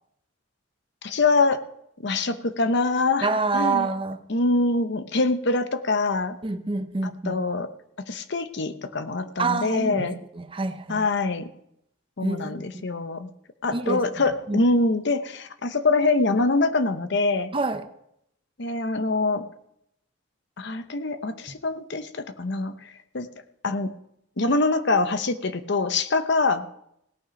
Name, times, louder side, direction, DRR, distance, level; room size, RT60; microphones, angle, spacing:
voice 1, 1.0-1.6 2.0-3.3 3.5-3.9 4.3-6.4 7.3-7.7 8.1-10.2 10.9-11.5 12.2-13.3 13.6-17.5 18.6-19.5 20.6-22.9 23.1-23.3 23.6-23.9 24.4-26.7, left 3 dB, 60° left, 0.8 m, -24 dB
voice 2, 3.2-4.2 6.4-7.4 9.4-11.1 12.2-12.9 13.7-14.6 17.5-17.9 21.5-21.6, right 3 dB, 25° right, 0.7 m, -28 dB
17.5 x 8.9 x 5.1 m
head